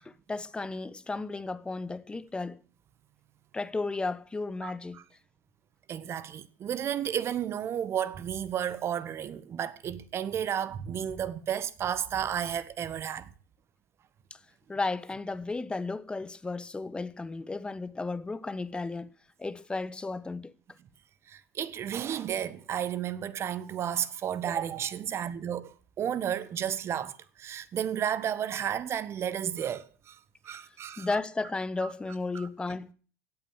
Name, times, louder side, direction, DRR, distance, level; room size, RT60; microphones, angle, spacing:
voice 1, 0.3-2.6 3.5-5.0 14.7-19.1 19.4-20.5 31.0-32.9, left 3 dB, 15° left, 1.2 m, -34 dB
voice 2, 4.6-5.0 5.9-13.3 21.3-30.2 30.4-31.2 31.8-31.9 32.3-32.5, right 9 dB, 40° right, 1.4 m, -32 dB
16.5 x 8.9 x 7.3 m
hypercardioid pair, 75°, 7 cm